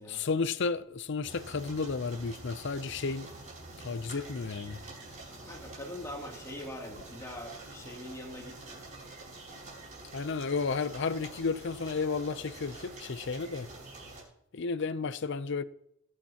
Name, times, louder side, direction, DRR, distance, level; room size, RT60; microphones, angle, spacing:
voice 1, 0.1-3.3 3.8-4.8 10.1-13.7 14.5-15.6, left 4 dB, 60° left, 0.6 m, -32 dB
sound 1, 1.2-14.2, right 2 dB, 35° right, 5.3 m, -47 dB
voice 2, 5.4-8.9, left 1 dB, 15° left, 2.8 m, -43 dB
21.0 x 8.7 x 2.9 m
head